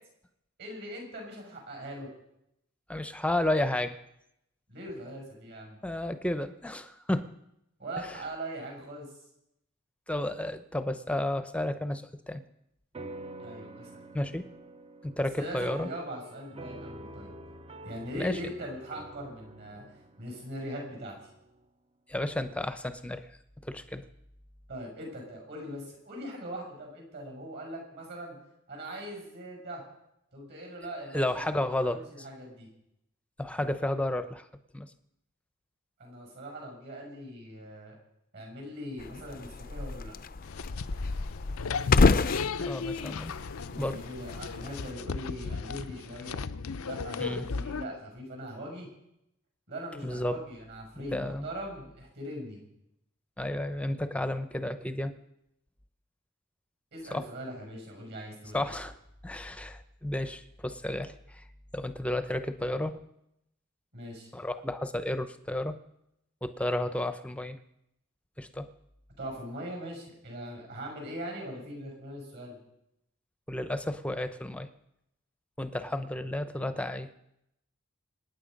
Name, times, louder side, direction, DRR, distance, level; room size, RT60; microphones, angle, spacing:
voice 1, 0.6-2.1 4.7-5.8 7.8-9.1 13.4-14.0 15.1-17.3 17.8-19.8 20.2-21.1 24.7-28.4 28.7-29.8 30.3-32.7 36.0-37.9 38.3-40.1 43.7-46.4 46.8-48.9 49.7-52.6 56.9-58.7 63.9-64.3 69.2-72.6, equal, 55° right, 1 dB, 6.7 m, -41 dB
voice 2, 2.9-4.0 5.8-7.3 8.1-8.2 10.1-12.4 14.1-14.4 15.0-15.9 18.2-18.4 22.1-23.3 23.6-24.0 31.1-32.0 33.4-34.5 34.7-34.9 42.6-43.3 43.8-44.0 47.2-47.5 50.0-50.4 51.1-51.5 53.4-55.1 57.1-57.3 58.5-58.9 59.2-61.4 61.7-63.0 64.3-65.8 66.4-67.6 68.4-68.7 73.5-74.7 75.6-77.1, left 1 dB, 5° left, 11 dB, 0.7 m, -32 dB
sound 1, 12.9-21.7, right 2 dB, 25° right, 0.7 m, -47 dB
sound 2, 39.0-44.9, left 3 dB, 45° left, 0.5 m, -29 dB
sound 3, 40.4-47.8, left 4 dB, 90° left, 0.6 m, -36 dB
26.5 x 9.4 x 5.3 m, 0.81 s
head